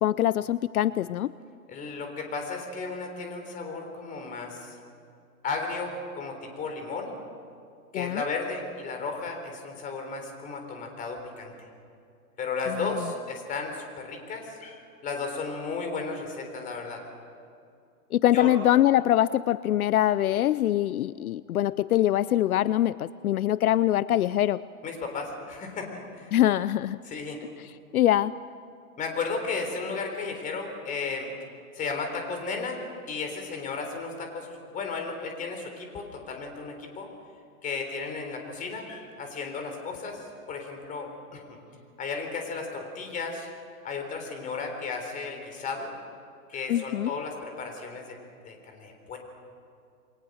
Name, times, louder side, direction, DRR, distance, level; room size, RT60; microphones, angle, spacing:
voice 1, 0.0-1.3 7.9-8.2 12.8-12.9 18.1-24.6 26.3-27.0 27.9-28.3 46.7-47.1, left 13 dB, 70° left, 17 dB, 0.6 m, -23 dB
voice 2, 1.7-4.8 5.4-7.2 7.9-11.5 12.4-17.0 18.3-18.5 24.8-25.9 26.1-26.3 27.0-27.4 29.0-31.3 31.7-32.8 33.1-37.1 37.6-41.6 42.0-43.5 43.8-45.9 46.5-48.1 48.4-49.2, left 4 dB, 20° left, 4 dB, 3.8 m, -34 dB
29.0 x 23.0 x 6.5 m, 2.4 s
hypercardioid pair, 150°, 44 cm